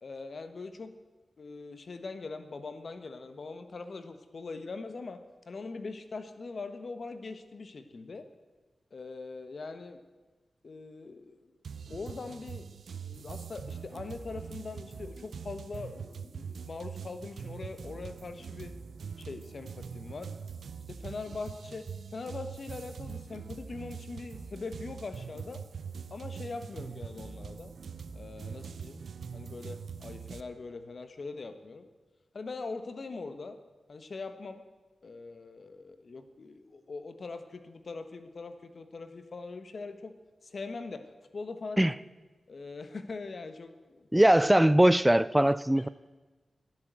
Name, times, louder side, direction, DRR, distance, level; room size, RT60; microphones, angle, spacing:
voice 1, 0.0-0.9 1.4-5.2 5.5-8.3 8.9-10.0 10.6-11.5 11.9-12.7 13.0-18.7 19.2-20.3 20.9-25.6 26.1-27.7 28.1-29.0 29.3-31.9 32.3-33.6 33.9-34.6 35.0-40.1 40.4-41.1 41.3-41.9 42.5-44.1 45.4-45.9, left 3 dB, 65° left, 1.3 m, -42 dB
sound 1, 11.6-30.4, right 6 dB, 80° right, 0.6 m, -43 dB
voice 2, 44.1-45.9, right 1 dB, 10° right, 0.4 m, -21 dB
12.0 x 11.0 x 7.6 m
cardioid pair, 45°, 0 cm